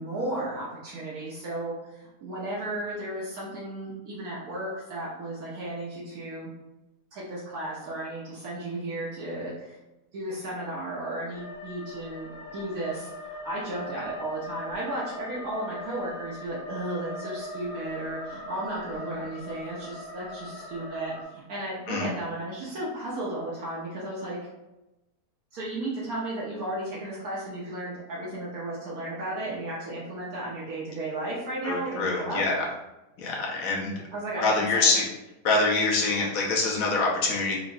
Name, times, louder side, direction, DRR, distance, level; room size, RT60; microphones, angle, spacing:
voice 1, 0.0-6.5 7.1-9.8 10.1-24.4 25.5-32.4 34.1-35.0, right 1 dB, 70° right, -7 dB, 1.3 m, -34 dB
sound 1, 11.3-21.2, left 2 dB, 45° left, 0.8 m, -41 dB
voice 2, 31.6-32.7 33.2-33.9 34.4-35.0 35.4-37.6, left 3 dB, 65° left, -3 dB, 1.2 m, -25 dB
4.9 x 2.5 x 2.5 m, 0.98 s
omnidirectional pair, 1.7 m